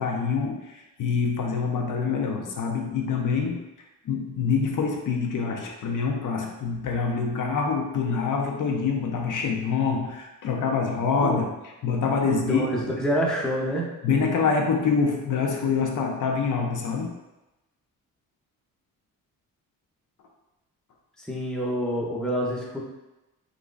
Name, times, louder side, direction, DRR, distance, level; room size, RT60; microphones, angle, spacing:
voice 1, 0.0-3.6 4.0-11.5 11.8-12.7 14.0-17.1, left 5 dB, 60° left, 1 dB, 0.6 m, -25 dB
voice 2, 12.2-13.9 21.2-22.8, equal, ahead, -3 dB, 0.6 m, -27 dB
3.8 x 3.0 x 2.4 m, 1.0 s
cardioid pair, 115°, 35 cm